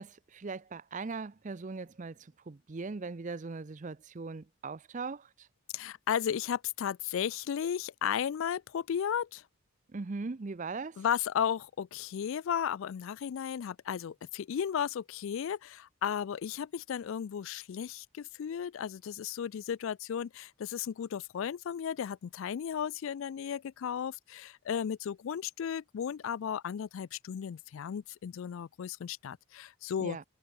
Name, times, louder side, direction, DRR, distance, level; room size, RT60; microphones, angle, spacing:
voice 1, 0.0-5.5 9.9-11.0 30.0-30.2, right 4 dB, 35° right, 0.5 m, -40 dB
voice 2, 5.7-9.4 11.0-30.2, left 8 dB, 65° left, 0.3 m, -34 dB
head